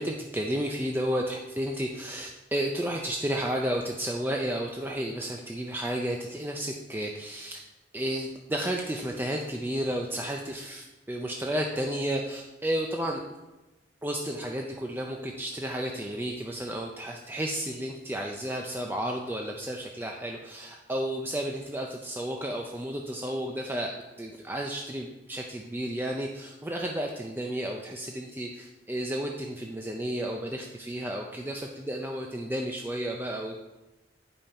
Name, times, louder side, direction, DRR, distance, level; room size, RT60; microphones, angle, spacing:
voice 1, 0.0-7.6 7.9-13.2 14.0-33.6, right 1 dB, 10° right, 1 dB, 0.4 m, -32 dB
8.9 x 5.5 x 4.2 m, 1.1 s
head